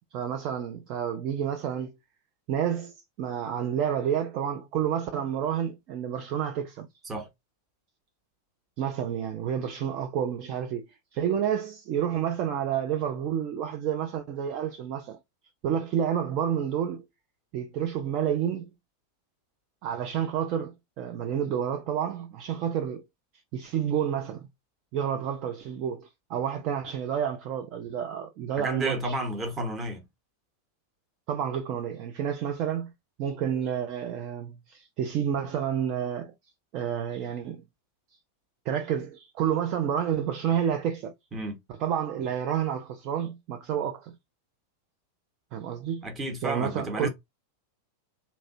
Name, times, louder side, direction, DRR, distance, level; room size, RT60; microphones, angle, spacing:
voice 1, 0.1-1.9 2.5-6.9 8.8-10.9 11.1-15.2 15.6-17.1 17.5-18.7 19.8-23.0 23.5-24.5 24.9-29.2 31.3-32.9 33.2-36.3 36.7-37.6 38.7-41.1 41.8-44.2 45.5-46.1 46.4-47.1, right 9 dB, 40° right, 0.5 m, -29 dB
voice 2, 28.6-30.0 41.3-41.6 46.0-47.1, right 1 dB, 20° right, 1.1 m, -31 dB
2.9 x 2.7 x 2.7 m
figure-of-eight pair, 90°, 0 cm